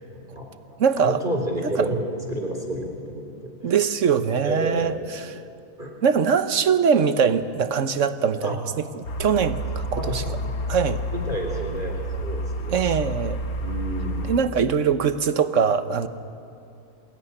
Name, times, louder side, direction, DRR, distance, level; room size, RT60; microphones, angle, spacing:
voice 1, 0.1-0.5 1.0-3.8 4.4-5.1 5.8-5.9 8.4-8.6 9.9-10.6 11.1-13.0 13.6-14.5, right 1 dB, 35° right, 1 dB, 3.6 m, -30 dB
voice 2, 0.8-1.2 1.8-1.9 3.6-5.3 6.0-10.2 10.7-11.0 12.7-13.4 14.3-16.1, right 6 dB, 60° right, 11 dB, 1.4 m, -22 dB
sound 1, 9.0-14.4, equal, 85° left, 1.9 m, -30 dB
26.5 x 20.5 x 9.9 m, 2.5 s
omnidirectional pair, 1.5 m